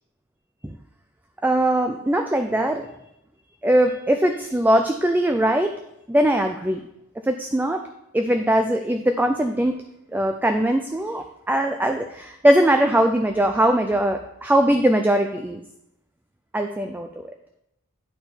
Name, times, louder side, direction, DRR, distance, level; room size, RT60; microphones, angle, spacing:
voice 1, 1.4-2.9 3.6-5.7 6.1-6.8 7.3-7.8 8.1-9.7 10.1-15.6 16.5-17.2, right 1 dB, 10° right, 5 dB, 0.3 m, -21 dB
10.5 x 3.6 x 4.4 m, 0.81 s
head